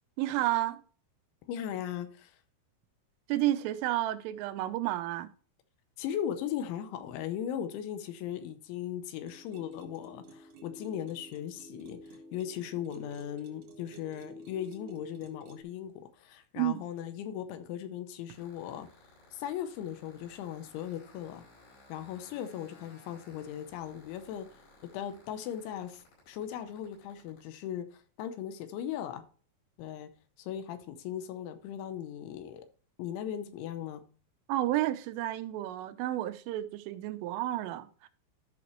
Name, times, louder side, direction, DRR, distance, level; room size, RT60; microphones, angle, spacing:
voice 1, 0.2-0.8 3.3-5.3 16.6-16.8 34.5-38.1, right 14 dB, 90° right, 3.3 m, -31 dB
voice 2, 1.5-2.4 6.0-18.9 19.3-21.4 21.9-24.5 24.9-29.2 29.8-30.1 30.4-32.7 33.0-34.0, left 10 dB, 80° left, 3.0 m, -38 dB
sound 1, 9.2-15.6, equal, 60° right, 2.2 m, -50 dB
sound 2, 18.3-27.4, left 3 dB, 60° left, 7.0 m, -58 dB
13.0 x 5.8 x 3.1 m
omnidirectional pair, 5.6 m